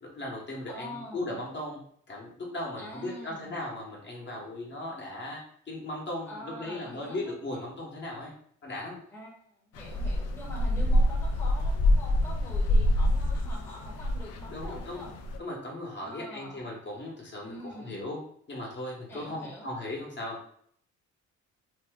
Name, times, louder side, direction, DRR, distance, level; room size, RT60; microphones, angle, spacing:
voice 1, 0.0-1.8 2.1-5.4 5.7-8.3 8.6-9.0 10.8-10.9 14.5-15.0 15.4-18.2 18.5-20.4, left 1 dB, 35° left, -2 dB, 1.0 m, -37 dB
voice 2, 0.7-1.3 2.8-3.5 6.3-7.5 9.1-15.1 16.0-16.7 17.4-18.0 19.1-19.7, left 1 dB, 5° left, -3 dB, 0.9 m, -44 dB
sound 1, 9.8-15.4, left 1 dB, 55° left, 0.4 m, -26 dB
2.7 x 2.1 x 3.4 m, 0.63 s
cardioid pair, 90°, 30 cm